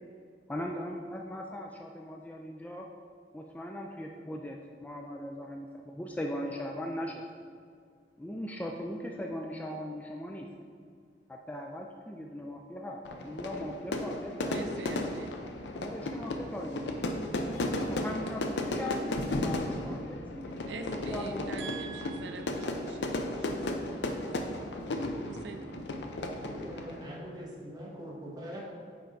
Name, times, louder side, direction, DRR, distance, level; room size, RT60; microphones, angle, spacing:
voice 1, 0.5-2.9 3.3-7.2 8.2-10.5 11.3-15.1 15.8-17.2 17.8-21.7, left 1 dB, 10° left, 1 dB, 0.3 m, -39 dB
Fire / Fireworks, 13.0-27.1, left 1 dB, 75° left, 0.6 m, -34 dB
voice 2, 14.5-15.4 20.7-24.6 25.2-25.9, right 5 dB, 80° right, 6 dB, 0.4 m, -44 dB
voice 3, 26.4-28.6, equal, 25° right, -5 dB, 1.4 m, -42 dB
8.6 x 3.5 x 3.9 m, 2.2 s
head